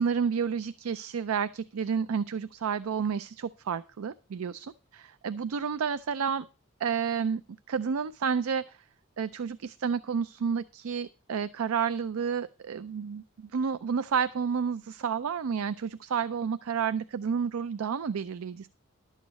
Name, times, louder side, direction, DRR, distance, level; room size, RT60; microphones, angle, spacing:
voice 1, 0.0-4.7 4.9-6.5 6.8-7.4 7.7-8.8 9.2-18.7, right 6 dB, 85° right, 14 dB, 0.4 m, -30 dB
12.0 x 8.3 x 4.1 m, 0.32 s
head